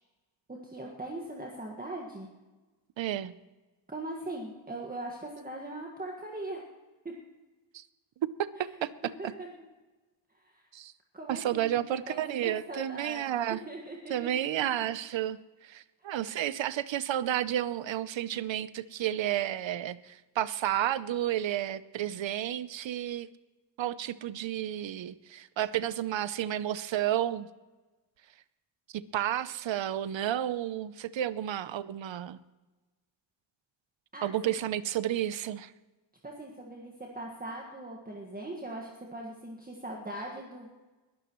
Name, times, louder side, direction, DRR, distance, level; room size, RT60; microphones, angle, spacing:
voice 1, 0.5-2.3 3.9-6.6 7.0-7.1 8.5-9.5 10.4-10.6 11.1-14.1 14.4-14.7 34.1-34.5 36.2-40.8, right 2 dB, 20° right, -1 dB, 1.7 m, -41 dB
voice 2, 3.0-3.3 7.7-7.8 8.2-8.9 9.2-9.3 10.7-10.9 11.3-13.6 14.1-23.3 23.8-27.5 28.9-32.4 34.2-35.7, right 11 dB, 80° right, 16 dB, 0.7 m, -31 dB
21.5 x 14.0 x 3.1 m, 1.2 s
wide cardioid pair, 140°, 45 cm